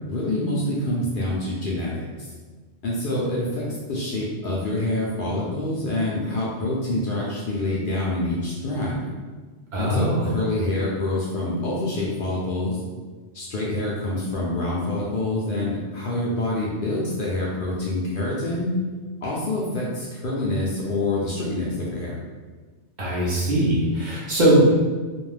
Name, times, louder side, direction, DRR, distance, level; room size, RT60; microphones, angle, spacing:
voice 1, 0.0-2.0 2.8-9.0 9.8-12.8 13.3-18.7 19.2-22.1, left 1 dB, 60° left, -5 dB, 0.6 m, -26 dB
voice 2, 9.7-10.3 23.0-24.6, right 1 dB, 50° right, -7 dB, 0.7 m, -20 dB
2.5 x 2.2 x 3.2 m, 1.4 s
omnidirectional pair, 1.2 m